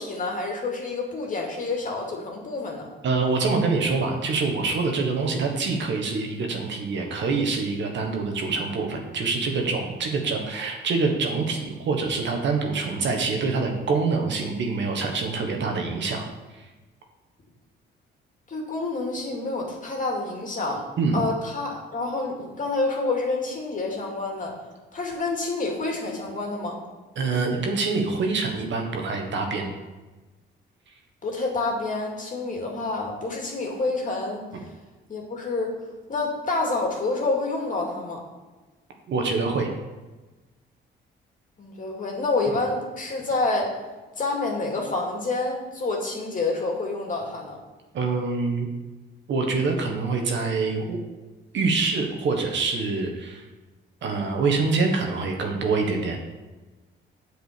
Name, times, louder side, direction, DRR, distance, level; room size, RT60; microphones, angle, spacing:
voice 1, 0.0-2.9 18.5-20.8 21.1-24.5 24.9-26.8 31.2-34.5 35.1-35.7 36.1-38.2 41.6-43.8 44.2-47.6, left 3 dB, 40° left, 0 dB, 2.4 m, -28 dB
voice 2, 3.0-16.2 21.0-21.2 27.2-29.7 39.1-39.7 47.9-48.7 49.3-51.0 51.5-53.4 54.0-56.2, right 4 dB, 65° right, 3 dB, 1.5 m, -25 dB
8.0 x 5.0 x 6.7 m, 1.2 s
cardioid pair, 90°, 20 cm